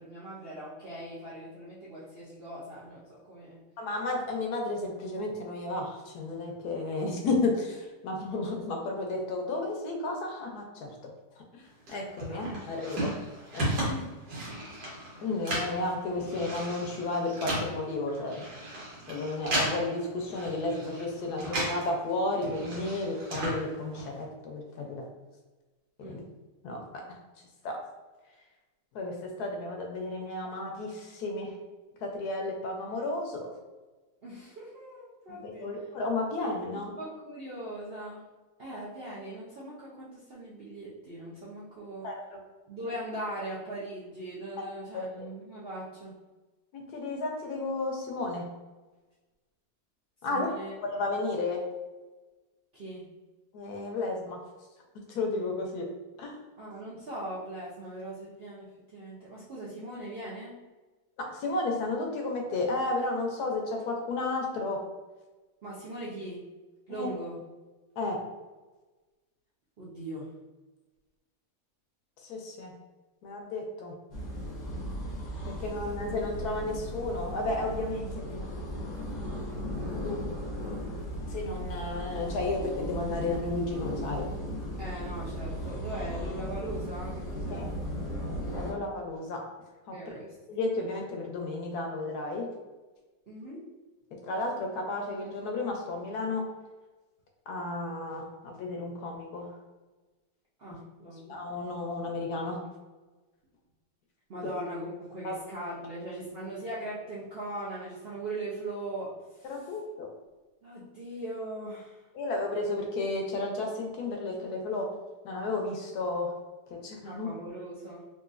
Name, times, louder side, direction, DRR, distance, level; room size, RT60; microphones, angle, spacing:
voice 1, 0.0-3.6 12.3-12.4 13.9-14.1 26.0-26.3 34.2-35.7 37.0-38.3 38.6-42.1 42.7-46.2 50.3-50.7 52.7-53.1 56.6-60.6 65.6-66.5 66.9-67.4 69.8-70.3 84.8-87.7 89.9-90.3 93.3-93.7 100.6-101.3 104.3-109.5 110.6-112.0 117.0-118.1, right 1 dB, 65° right, -7 dB, 0.6 m, -40 dB
voice 2, 3.8-11.6 11.9-13.1 13.5-13.8 15.2-18.5 19.1-25.1 26.0-26.2 26.6-27.8 28.9-31.6 32.0-33.5 35.3-36.9 42.0-42.4 42.8-42.9 44.6-44.7 44.9-45.3 46.7-48.5 50.2-50.5 50.8-51.6 53.5-54.4 54.9-55.9 56.2-56.4 61.2-64.8 66.9-67.1 68.0-68.2 72.2-72.7 73.2-73.9 75.5-78.5 80.0-80.3 81.3-84.3 87.5-87.7 88.5-89.4 89.9-90.0 90.5-92.5 94.1-96.4 97.5-99.5 100.7-100.8 101.3-102.6 104.4-104.5 105.2-105.4 109.4-110.1 112.1-114.9 115.2-116.3 116.7-117.3, left 2 dB, 70° left, 1 dB, 1.1 m, -33 dB
sound 1, 11.9-21.9 22.2-24.2, right 1 dB, 85° right, 1.7 m, -35 dB
sound 2, 74.1-88.7, equal, 40° left, 0.6 m, -36 dB
3.8 x 2.4 x 2.4 m, 1.2 s
omnidirectional pair, 1.8 m